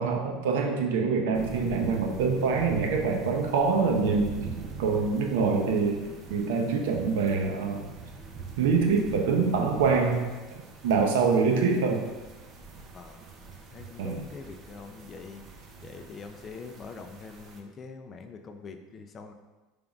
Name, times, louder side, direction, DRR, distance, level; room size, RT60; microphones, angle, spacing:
voice 1, 0.0-4.5 4.8-7.9 8.6-10.3 10.8-12.0 14.0-14.2, right 5 dB, 90° right, 2 dB, 0.6 m, -25 dB
sound 1, 1.3-17.6, right 4 dB, 35° right, 0.5 m, -43 dB
voice 2, 12.9-13.2 13.7-15.4 15.8-19.3, left 4 dB, 30° left, 5 dB, 0.4 m, -44 dB
5.1 x 3.4 x 2.4 m, 1.2 s
supercardioid pair, 140°, 0 cm